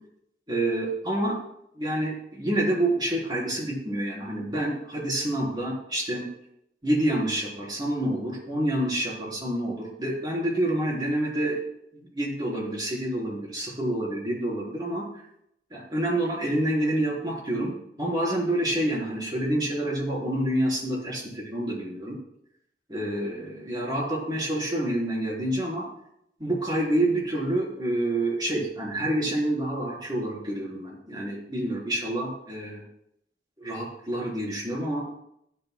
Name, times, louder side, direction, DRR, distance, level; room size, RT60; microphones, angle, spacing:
voice 1, 0.5-1.3 1.8-6.2 6.8-11.6 11.9-15.0 15.7-17.7 18.0-22.2 22.9-25.8 26.4-32.8 33.6-35.0, right 1 dB, 25° right, -4 dB, 3.8 m, -28 dB
16.5 x 10.5 x 2.2 m, 0.75 s
head